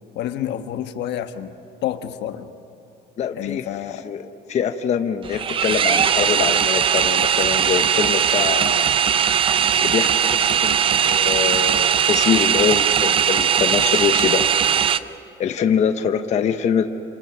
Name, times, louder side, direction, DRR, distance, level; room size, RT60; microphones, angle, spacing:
voice 1, 0.1-2.5 3.4-4.1, left 11 dB, 80° left, 8 dB, 1.3 m, -29 dB
voice 2, 3.2-3.6 4.0-4.2 4.5-9.0 9.8-14.4 15.4-16.9, left 7 dB, 40° left, 6 dB, 1.0 m, -23 dB
sound 1, 5.2-15.0, right 8 dB, 30° right, 0.5 m, -19 dB
28.5 x 27.5 x 6.1 m, 2.6 s
cardioid pair, 180°, 18 cm